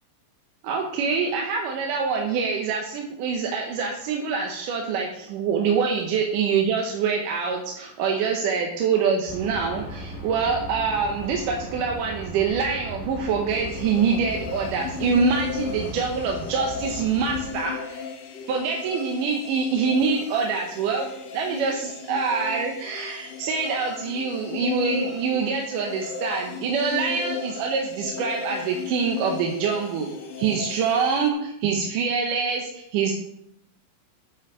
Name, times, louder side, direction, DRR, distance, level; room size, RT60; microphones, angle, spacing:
voice 1, 0.6-18.0 18.5-30.1 30.4-33.1, right 5 dB, 75° right, 1 dB, 2.4 m, -25 dB
sound 1, 9.3-17.5, equal, ahead, 1.8 m, -37 dB
sound 2, 13.5-31.3, left 5 dB, 65° left, 2.5 m, -35 dB
8.1 x 7.1 x 4.9 m, 0.79 s
omnidirectional pair, 3.9 m